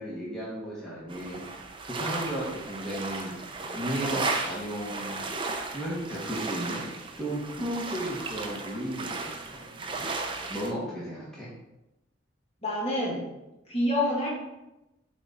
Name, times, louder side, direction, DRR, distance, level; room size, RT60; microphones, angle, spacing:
voice 1, 0.0-1.4 1.9-3.4 3.7-5.2 5.7-6.8 7.1-9.6 10.5-11.5, right 1 dB, 5° left, -8 dB, 1.4 m, -34 dB
sound 1, 1.1-10.7, right 3 dB, 25° right, 0.6 m, -35 dB
voice 2, 12.6-13.2 13.7-14.3, left 1 dB, 30° left, -5 dB, 2.1 m, -27 dB
7.9 x 4.2 x 3.9 m, 0.94 s
head